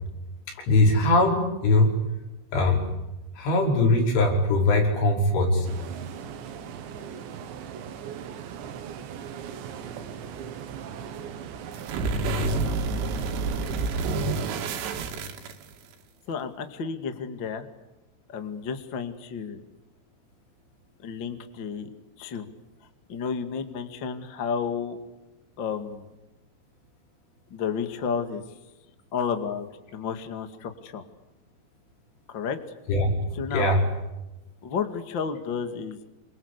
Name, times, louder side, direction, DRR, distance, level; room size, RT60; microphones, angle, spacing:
voice 1, 0.7-2.0 2.5-2.9 3.4-5.7 32.9-33.1 33.5-33.8, left 2 dB, 80° left, 1 dB, 8.0 m, -21 dB
sound 1, 5.6-14.8, right 8 dB, 70° right, 3.7 m, -38 dB
sound 2, 11.7-15.9, right 3 dB, 90° right, 4.9 m, -28 dB
voice 2, 16.3-17.7 18.3-19.6 21.0-21.9 22.2-22.5 23.1-25.0 25.6-26.0 27.5-28.4 29.1-29.7 29.9-31.0 32.3-32.6 33.3-33.7 34.6-36.1, left 6 dB, 45° left, 7 dB, 1.6 m, -31 dB
28.0 x 25.0 x 8.3 m, 1.0 s
omnidirectional pair, 5.5 m